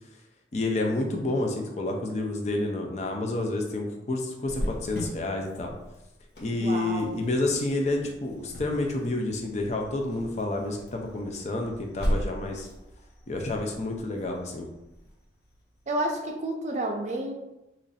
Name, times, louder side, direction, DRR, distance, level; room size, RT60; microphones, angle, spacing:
voice 1, 0.5-5.7 6.4-12.7 13.3-14.7, left 2 dB, 40° left, 2 dB, 0.5 m, -29 dB
Cricket, 4.4-15.9, equal, 60° left, 0.9 m, -38 dB
voice 2, 6.6-7.1 15.9-17.3, right 1 dB, 40° right, 2 dB, 0.4 m, -30 dB
3.0 x 2.6 x 4.0 m, 0.91 s
head